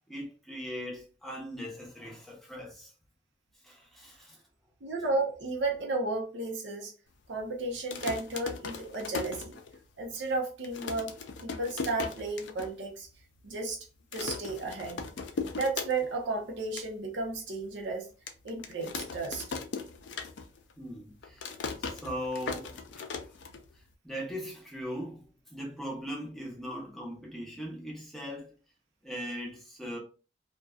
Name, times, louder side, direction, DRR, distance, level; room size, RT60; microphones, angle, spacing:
voice 1, 0.1-2.9 3.6-4.4 20.8-21.5 21.8-23.2 24.0-28.5 29.0-30.0, equal, ahead, 0.7 m, -39 dB
voice 2, 4.8-6.9 7.3-9.5 10.0-11.1 11.4-13.1 13.4-13.8 14.1-15.0 15.6-18.1 18.4-19.5, right 3 dB, 80° right, 0.7 m, -33 dB
sound 1, 7.7-10.0 10.3-10.4 10.6-12.7 13.1-13.2 13.4-13.7 14.1-16.3 16.5-16.9 17.4-17.5 18.3-20.7 21.0-23.9, left 5 dB, 80° left, 0.4 m, -38 dB
2.5 x 2.2 x 2.3 m
head